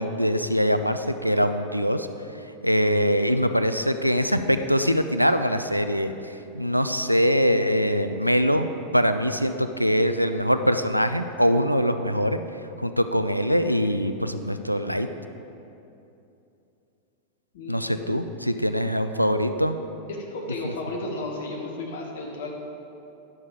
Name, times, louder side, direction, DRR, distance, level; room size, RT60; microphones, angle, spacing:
voice 1, 0.0-2.1 2.6-8.7 8.9-12.4 12.8-15.1 17.7-19.8 20.6-20.7, equal, 90° right, 9 dB, 0.4 m, -23 dB
voice 2, 17.5-18.1 20.1-22.5, left 2 dB, 60° left, 0 dB, 1.5 m, -33 dB
11.0 x 6.4 x 4.9 m, 2.8 s
figure-of-eight pair, 90°, 0 cm